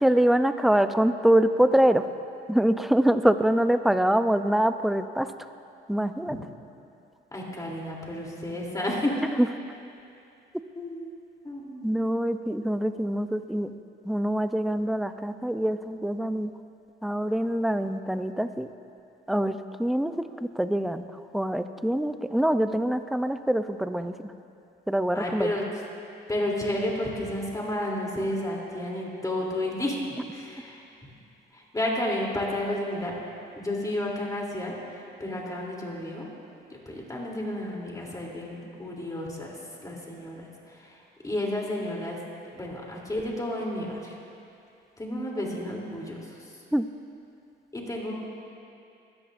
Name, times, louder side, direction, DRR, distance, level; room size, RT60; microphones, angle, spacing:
voice 1, 0.0-2.1 2.5-5.3 5.9-6.4 9.4-9.5 11.8-13.7 14.0-16.5 17.0-18.7 19.3-21.1 21.3-24.3 24.9-25.5 46.7-46.9, right 1 dB, ahead, 10 dB, 0.5 m, -24 dB
voice 2, 7.3-9.2 10.7-11.1 11.4-11.9 25.1-25.6 26.3-31.1 31.5-33.2 33.5-36.3 36.7-39.5 39.8-41.0 41.2-42.2 42.5-44.1 45.0-46.4 47.7-48.1, left 1 dB, 20° left, -3 dB, 3.1 m, -31 dB
21.0 x 14.0 x 2.6 m, 2.6 s
cardioid pair, 90°, 20 cm